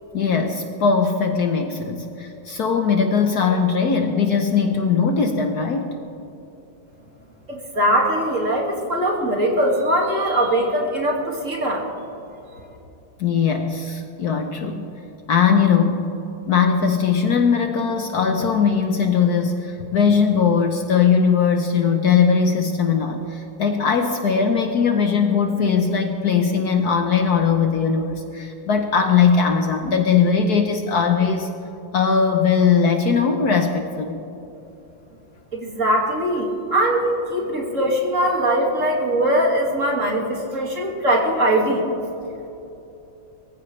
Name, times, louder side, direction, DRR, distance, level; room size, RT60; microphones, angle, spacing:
voice 1, 0.1-6.0 13.2-14.9 15.3-16.1 16.5-31.5 31.9-34.2, left 6 dB, 60° left, 5 dB, 1.2 m, -19 dB
voice 2, 7.5-11.8 35.5-41.8, right 1 dB, 40° right, -1 dB, 2.3 m, -21 dB
22.5 x 15.0 x 3.2 m, 3.0 s
omnidirectional pair, 2.1 m